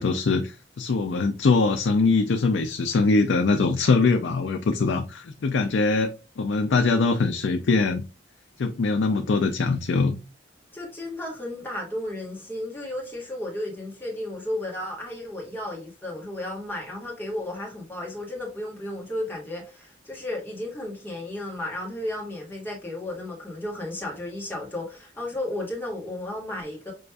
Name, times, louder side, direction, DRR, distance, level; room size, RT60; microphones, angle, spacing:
voice 1, 0.0-8.0 8.6-10.1, left 4 dB, 80° left, 0.4 m, -22 dB
voice 2, 10.7-26.9, left 1 dB, 10° left, 1.2 m, -33 dB
5.6 x 2.5 x 2.2 m
head